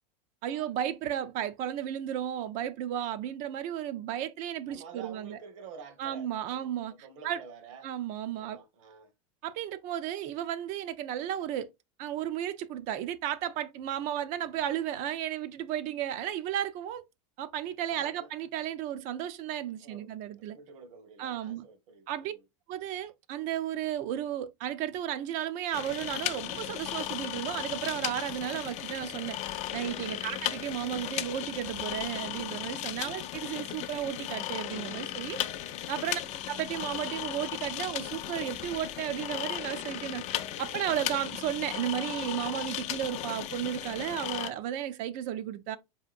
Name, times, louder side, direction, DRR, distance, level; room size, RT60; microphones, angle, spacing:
voice 1, 0.4-5.4 6.0-6.9 7.2-7.4 7.8-8.6 9.4-11.7 12.0-17.0 17.4-20.6 21.2-21.7 22.1-22.3 22.7-29.4 29.7-35.4 35.9-36.2 36.5-40.2 40.6-45.8, right 11 dB, 50° right, 0.4 m, -34 dB
voice 2, 4.7-7.9 8.3-9.1 17.9-18.3 19.8-20.1 20.5-22.4 30.1-30.4 32.9-33.2 36.1-36.2, right 6 dB, 70° right, 1.0 m, -49 dB
sound 1, 25.7-44.5, left 12 dB, 40° left, 0.4 m, -36 dB
4.3 x 2.8 x 2.4 m
hypercardioid pair, 110°, 17 cm